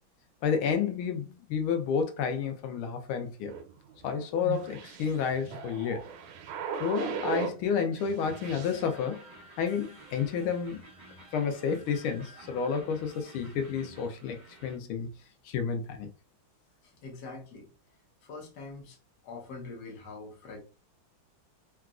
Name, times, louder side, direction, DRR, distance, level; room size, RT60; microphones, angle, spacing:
voice 1, 0.4-3.5 4.0-6.1 6.8-9.3 9.6-10.8 11.3-15.1 15.4-16.1, left 6 dB, 85° left, 1.4 m, -30 dB
sound 1, 3.5-7.6 7.9-8.8, right 7 dB, 90° right, 1.5 m, -38 dB
sound 2, 8.2-14.8, right 2 dB, 55° right, 0.4 m, -51 dB
voice 2, 16.8-17.7 18.2-19.0 19.2-20.6, left 3 dB, 60° left, 1.3 m, -44 dB
3.9 x 2.3 x 2.4 m
omnidirectional pair, 2.2 m